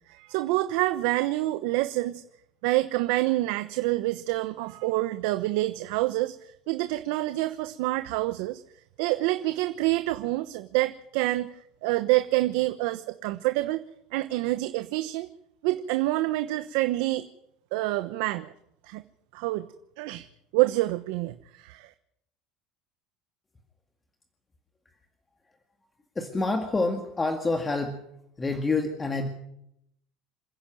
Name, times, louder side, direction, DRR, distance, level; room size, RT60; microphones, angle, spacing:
voice 1, 0.1-2.2 2.6-8.6 9.0-13.8 14.1-15.3 15.6-17.3 17.7-18.5 18.8-19.0 19.3-19.7 20.0-20.3 20.5-21.9, right 18 dB, 75° right, 10 dB, 1.0 m, -27 dB
voice 2, 26.2-28.1 28.4-29.3, left 3 dB, 15° left, 5 dB, 2.0 m, -27 dB
27.5 x 10.5 x 9.1 m, 0.78 s
cardioid pair, 150°, 0 cm